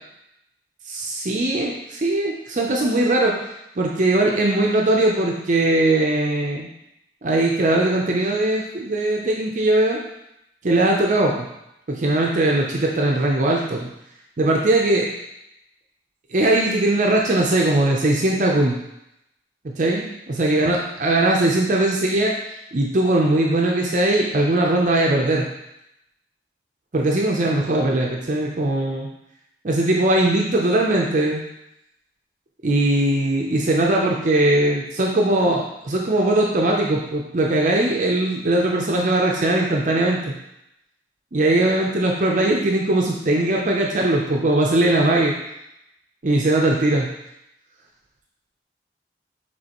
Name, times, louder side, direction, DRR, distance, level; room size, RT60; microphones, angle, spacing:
voice 1, 0.9-3.4 3.8-6.7 7.2-10.0 10.6-11.5 11.9-13.9 14.4-15.1 16.3-18.8 19.8-22.4 22.7-25.5 26.9-29.1 29.6-31.4 32.6-40.3 41.3-45.3 46.2-47.1, right 1 dB, 45° right, -1 dB, 0.5 m, -20 dB
5.3 x 3.3 x 2.9 m, 0.84 s
head